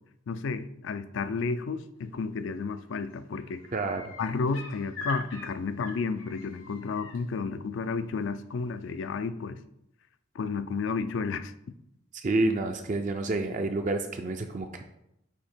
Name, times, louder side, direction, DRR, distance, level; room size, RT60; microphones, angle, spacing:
voice 1, 0.3-3.6 4.2-9.6 10.3-11.5, left 4 dB, 70° left, 12 dB, 0.4 m, -32 dB
sound 1, 2.5-2.8 3.1-7.2 8.8-8.9, left 2 dB, 85° left, 2.2 m, -43 dB
voice 2, 3.7-4.1 12.1-14.8, right 2 dB, 35° right, 5 dB, 0.4 m, -29 dB
8.4 x 2.8 x 4.4 m, 0.81 s
head